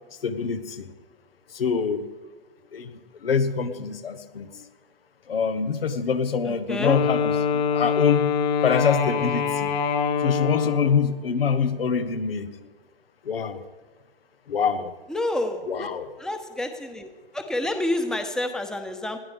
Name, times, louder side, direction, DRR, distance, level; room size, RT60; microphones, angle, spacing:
voice 1, 0.2-0.9 1.5-2.0 2.7-2.9 3.2-4.6 5.3-8.3 8.6-9.7 10.2-12.5 13.2-13.6 14.5-14.9 15.6-16.1, left 6 dB, 75° left, 10 dB, 1.4 m, -25 dB
Wind instrument woodwind instrument, 6.8-11.1, left 6 dB, 50° left, 2.3 m, -24 dB
voice 2, 15.1-15.9 16.2-17.1 17.3-19.2, left 1 dB, ahead, 7 dB, 1.1 m, -28 dB
21.0 x 15.0 x 3.5 m, 1.3 s
hypercardioid pair, 120°, 29 cm